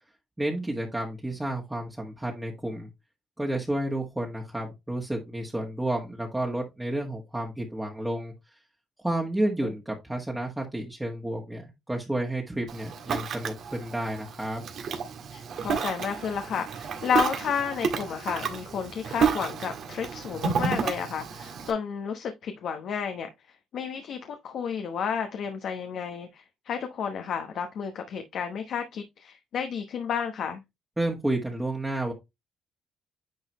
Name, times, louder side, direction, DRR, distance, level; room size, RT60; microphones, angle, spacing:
voice 1, 0.4-2.9 3.4-8.3 9.0-14.7 31.0-32.1, right 1 dB, 10° right, 1.6 m, -31 dB
Ocean, 12.7-21.7, right 6 dB, 70° right, 1.6 m, -31 dB
voice 2, 15.3-23.3 23.7-30.6, left 7 dB, 70° left, 1.0 m, -31 dB
9.6 x 3.9 x 3.0 m
cardioid pair, 90°, 0 cm